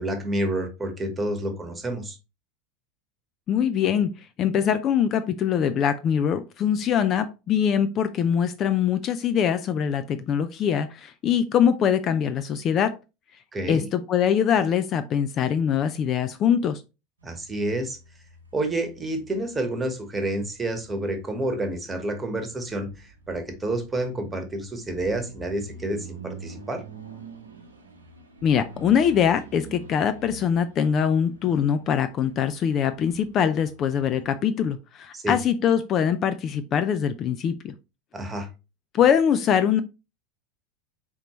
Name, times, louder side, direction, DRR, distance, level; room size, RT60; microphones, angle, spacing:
voice 1, 0.0-2.2 13.5-13.8 17.2-18.0 18.5-26.8 35.1-35.3 38.1-38.5, right 1 dB, 15° right, 1.2 m, -29 dB
voice 2, 3.5-4.1 4.4-13.0 13.7-16.8 28.4-37.7 38.9-39.8, left 8 dB, 40° left, 0.4 m, -23 dB
sound 1, 17.2-34.4, right 3 dB, 80° right, 1.0 m, -47 dB
4.4 x 3.9 x 3.0 m
figure-of-eight pair, 80°, 0 cm